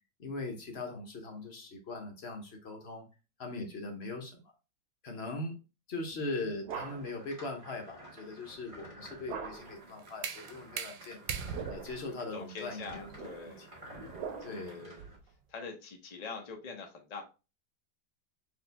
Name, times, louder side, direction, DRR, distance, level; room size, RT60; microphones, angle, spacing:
voice 1, 0.2-3.1 3.4-4.5 5.0-5.6 5.9-11.2 11.7-13.1 13.5-13.7 14.4-14.9, left 2 dB, 50° left, 0.9 m, -40 dB
sound 1, 6.1-7.3 9.3-9.9 11.3-12.1 12.9-14.8, right 6 dB, 65° right, 1.3 m, -43 dB
sound 2, 6.7-15.2, right 1 dB, 20° right, 1.9 m, -52 dB
sound 3, 9.5-15.3, right 7 dB, 85° right, 1.3 m, -43 dB
voice 2, 12.3-13.7 14.5-15.0 15.5-17.2, left 4 dB, 85° left, 0.3 m, -44 dB
4.3 x 3.0 x 3.3 m
omnidirectional pair, 1.9 m